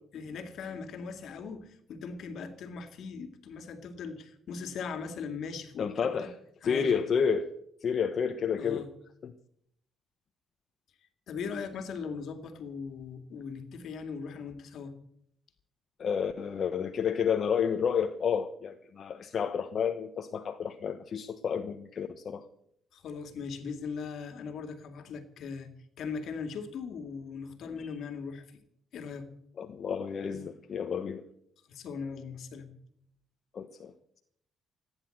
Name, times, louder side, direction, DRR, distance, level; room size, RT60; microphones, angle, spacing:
voice 1, 0.1-6.3 6.6-7.0 8.6-8.9 11.3-14.9 22.9-25.7 26.0-28.4 28.9-29.3 31.7-32.7, left 5 dB, 70° left, 2.2 m, -39 dB
voice 2, 5.8-6.3 6.6-7.5 7.8-8.9 9.2-9.3 16.0-22.4 27.8-27.9 29.6-31.2 33.5-33.9, left 7 dB, 55° left, 1.1 m, -30 dB
16.0 x 10.0 x 7.8 m
cardioid pair, 90°, 0 cm